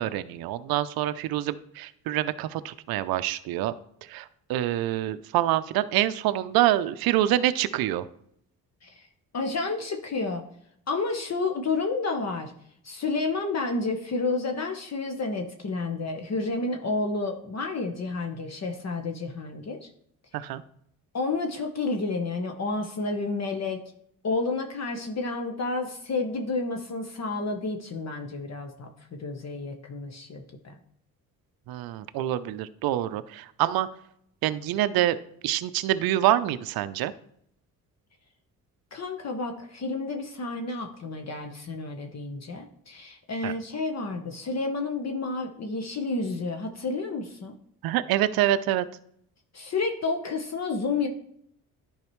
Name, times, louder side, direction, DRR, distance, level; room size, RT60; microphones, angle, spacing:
voice 1, 0.0-3.7 4.0-8.0 20.3-20.6 31.7-33.9 34.4-35.2 35.4-37.1 43.4-43.5 47.8-48.9, right 13 dB, 65° right, 13 dB, 0.6 m, -26 dB
voice 2, 9.3-10.4 10.9-12.5 12.8-19.8 21.1-23.8 24.2-30.8 38.9-47.5 49.5-51.1, left 3 dB, 40° left, 4 dB, 1.1 m, -30 dB
10.5 x 4.8 x 3.1 m, 0.69 s
supercardioid pair, 60°, 39 cm